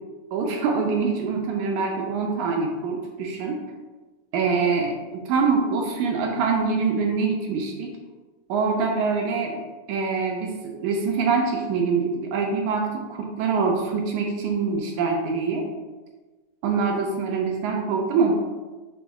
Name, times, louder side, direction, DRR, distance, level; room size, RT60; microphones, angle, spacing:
voice 1, 0.3-3.6 4.3-7.9 8.5-9.6 9.9-15.7 16.6-18.3, right 4 dB, 75° right, 1 dB, 2.0 m, -24 dB
6.2 x 3.3 x 4.8 m, 1.3 s
omnidirectional pair, 3.8 m